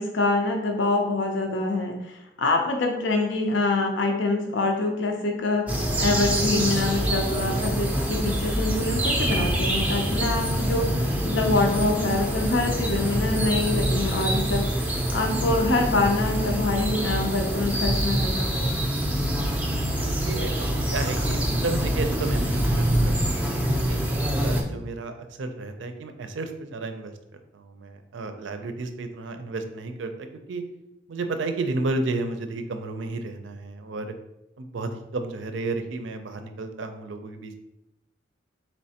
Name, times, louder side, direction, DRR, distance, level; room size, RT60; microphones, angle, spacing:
voice 1, 0.0-14.7 15.1-18.7, left 2 dB, 80° left, 3 dB, 0.5 m, -25 dB
sound 1, 5.7-24.6, equal, 10° right, 0.4 m, -25 dB
voice 2, 19.6-23.3 23.9-24.0 24.4-27.1 27.5-30.6 31.1-34.1 34.6-37.5, right 3 dB, 85° right, 7 dB, 0.5 m, -32 dB
4.3 x 3.2 x 2.8 m, 0.90 s
head